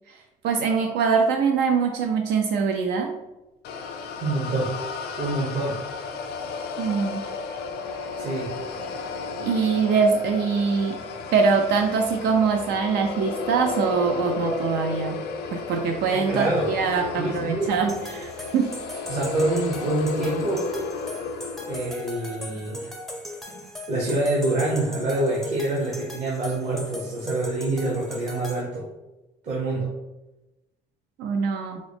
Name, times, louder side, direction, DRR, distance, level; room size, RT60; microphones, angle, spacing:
voice 1, 0.4-3.1 6.8-7.2 9.4-11.0 11.3-15.2 15.5-18.7 31.2-31.8, right 5 dB, 80° right, 3 dB, 0.4 m, -23 dB
sound 1, 3.6-21.9, left 4 dB, 70° left, 0.4 m, -33 dB
voice 2, 4.2-4.8 5.2-5.8 8.2-8.5 16.1-16.7 17.1-17.7 19.1-20.7 21.7-23.0 23.9-28.9 29.4-29.9, right 2 dB, 45° right, -4 dB, 0.8 m, -26 dB
sound 2, 17.9-28.6, left 1 dB, ahead, 0.5 m, -38 dB
3.6 x 2.0 x 3.3 m, 1.0 s
cardioid pair, 110°, 17 cm